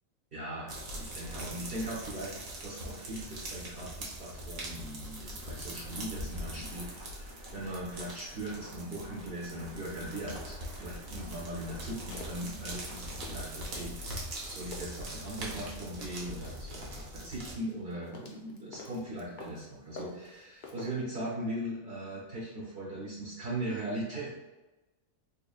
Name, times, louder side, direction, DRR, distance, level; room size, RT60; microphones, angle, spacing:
voice 1, 0.3-2.3 2.6-24.3, right 1 dB, 45° right, -5 dB, 1.1 m, -39 dB
sound 1, 0.7-17.5, right 1 dB, 85° right, 1.3 m, -42 dB
sound 2, 5.9-13.4, equal, 30° right, 0.6 m, -54 dB
sound 3, 12.1-12.7 13.1-14.0 14.3-17.0 17.6-19.7 20.0-21.0, left 3 dB, 55° left, 0.5 m, -48 dB
3.8 x 3.6 x 2.3 m, 1.1 s
omnidirectional pair, 1.4 m